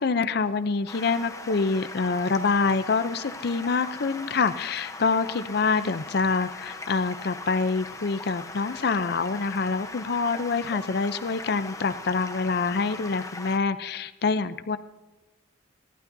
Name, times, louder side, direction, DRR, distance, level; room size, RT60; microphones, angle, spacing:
voice 1, 0.0-14.8, left 4 dB, 55° left, 12 dB, 0.5 m, -26 dB
Stream, 0.9-13.6, left 3 dB, 15° left, 0.8 m, -40 dB
24.0 x 12.0 x 2.7 m, 1.1 s
head